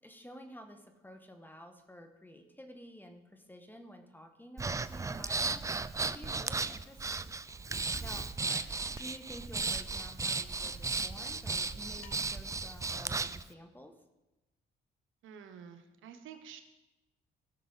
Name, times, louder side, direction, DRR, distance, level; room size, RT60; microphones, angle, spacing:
voice 1, 0.0-7.3 8.0-8.3 8.9-13.9, equal, 10° left, 6 dB, 1.4 m, -51 dB
Breathing, 4.6-13.4, right 4 dB, 15° right, 0.4 m, -35 dB
voice 2, 8.4-8.7 15.2-16.6, right 8 dB, 80° right, 7 dB, 1.0 m, -49 dB
sound 1, 9.0-9.5 12.0-12.6, left 8 dB, 90° left, 0.9 m, -59 dB
16.5 x 6.1 x 4.0 m, 1.0 s
cardioid pair, 90°, 20 cm